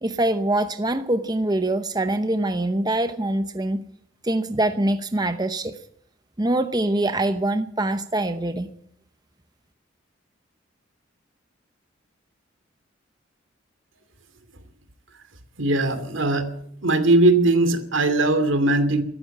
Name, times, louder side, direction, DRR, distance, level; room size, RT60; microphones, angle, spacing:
voice 1, 0.0-3.8 4.2-5.8 6.4-8.7, right 1 dB, 20° right, 9 dB, 0.8 m, -24 dB
voice 2, 15.6-16.5 16.8-19.0, right 2 dB, 75° right, 11 dB, 2.5 m, -19 dB
14.5 x 13.5 x 7.2 m, 0.67 s
head